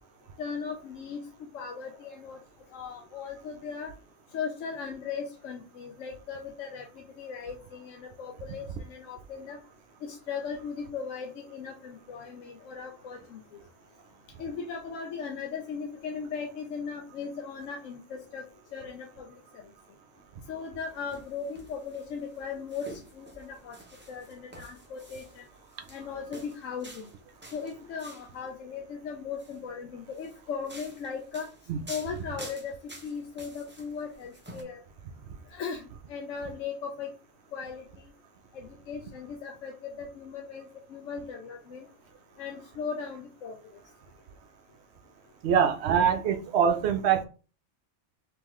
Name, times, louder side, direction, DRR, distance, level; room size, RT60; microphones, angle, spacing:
voice 1, 0.4-1.2 1.5-2.4 2.7-3.9 4.3-6.8 7.2-9.6 10.0-13.4 14.4-18.4 18.7-19.3 20.5-23.8 24.1-25.5 25.9-27.1 27.5-31.5 31.9-32.7 33.0-34.8 35.5-35.8 36.1-37.1 37.5-37.8 38.5-40.6 40.9-41.9 42.4-43.6, left 6 dB, 80° left, 2 dB, 1.0 m, -37 dB
sound 1, 20.8-28.4 29.2-29.6 30.1-34.6, right 1 dB, 15° right, 0.4 m, -49 dB
voice 2, 45.4-47.3, right 7 dB, 65° right, 7 dB, 0.7 m, -24 dB
3.7 x 3.1 x 3.0 m, 0.35 s
omnidirectional pair, 1.3 m